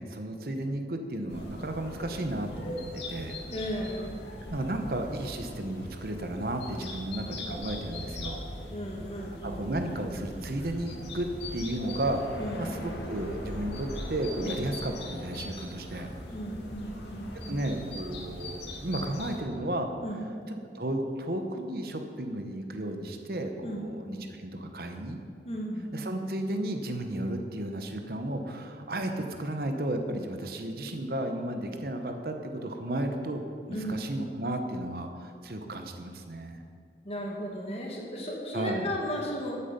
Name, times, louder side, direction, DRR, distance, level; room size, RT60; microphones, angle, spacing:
voice 1, 0.0-3.4 4.5-8.4 9.4-12.2 12.6-16.1 17.5-19.9 20.7-25.2 25.9-33.4 33.7-36.6 38.5-38.9, right 1 dB, 55° right, 5 dB, 0.9 m, -33 dB
sound 1, 1.3-19.4, left 1 dB, 80° left, 2.1 m, -40 dB
voice 2, 3.5-4.2 8.7-9.6 12.4-12.8 14.4-14.6 16.3-17.6 20.0-20.3 23.6-23.9 25.4-25.9 33.7-34.0 37.0-39.6, equal, 35° left, -1 dB, 1.9 m, -35 dB
13.0 x 8.6 x 5.2 m, 2.3 s
head